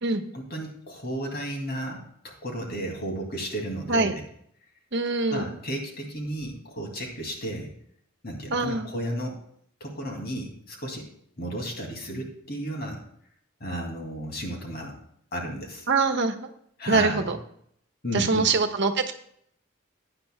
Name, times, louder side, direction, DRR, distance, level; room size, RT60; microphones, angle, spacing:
voice 1, 0.3-4.2 5.3-7.7 8.2-9.4 9.8-11.1 11.4-13.0 13.6-15.0 15.3-15.9 16.8-17.3 18.0-18.5, equal, 50° left, 1 dB, 2.5 m, -33 dB
voice 2, 4.9-5.5 8.5-8.9 15.9-16.3 16.9-17.4 18.1-19.1, right 3 dB, 60° right, 5 dB, 1.2 m, -23 dB
16.5 x 10.0 x 2.3 m, 0.66 s
head